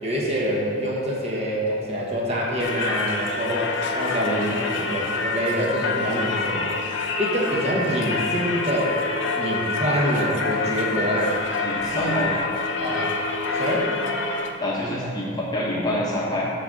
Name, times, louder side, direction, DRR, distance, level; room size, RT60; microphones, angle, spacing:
voice 1, 0.0-6.7 7.2-9.0 9.4-11.3 11.9-12.2 12.8-13.2 13.5-13.9, equal, 30° right, -4 dB, 1.3 m, -26 dB
Singing / Church bell, 2.6-14.5, left 3 dB, 70° left, 0.7 m, -27 dB
voice 2, 4.2-4.5 11.6-12.4 14.6-16.5, left 1 dB, 20° left, -5 dB, 1.0 m, -26 dB
8.2 x 4.1 x 6.3 m, 2.4 s
head